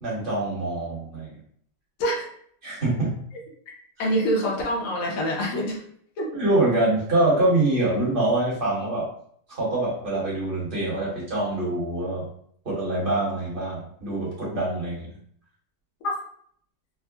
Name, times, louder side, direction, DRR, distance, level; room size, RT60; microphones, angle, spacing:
voice 1, 0.0-1.3 2.6-3.1 6.3-9.0 9.5-12.2 12.6-15.1, right 2 dB, 35° right, -6 dB, 1.2 m, -25 dB
voice 2, 4.0-5.8 6.2-6.3 16.0-16.1, equal, 60° left, -2 dB, 1.0 m, -25 dB
3.7 x 2.0 x 2.3 m, 0.63 s
omnidirectional pair, 2.0 m